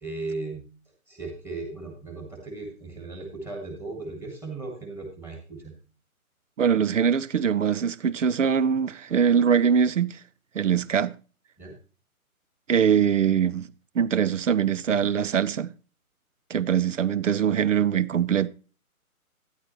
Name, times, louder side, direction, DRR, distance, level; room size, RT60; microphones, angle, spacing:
voice 1, 0.0-0.6 1.1-5.7 11.6-11.7, right 3 dB, 5° right, 1.6 m, -36 dB
voice 2, 6.6-10.2 10.5-11.2 12.7-13.7 13.9-15.7 16.5-18.5, right 7 dB, 55° right, 0.6 m, -22 dB
12.5 x 9.9 x 3.1 m
figure-of-eight pair, 150°, 44 cm